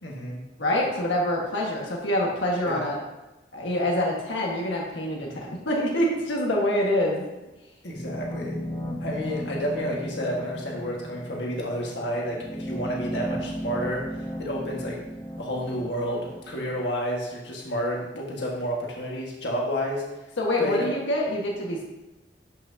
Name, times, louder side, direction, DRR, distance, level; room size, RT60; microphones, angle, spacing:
voice 1, 0.0-0.4 2.7-2.9 7.8-8.6 9.0-15.0 15.4-20.0 20.6-20.9, equal, 65° left, -2 dB, 1.5 m, -30 dB
voice 2, 0.6-3.0 3.5-7.3 20.4-21.8, left 1 dB, 90° left, -2 dB, 1.5 m, -26 dB
sound 1, 7.9-16.8, equal, 25° left, 1.0 m, -35 dB
12.0 x 5.9 x 2.7 m, 1.0 s
head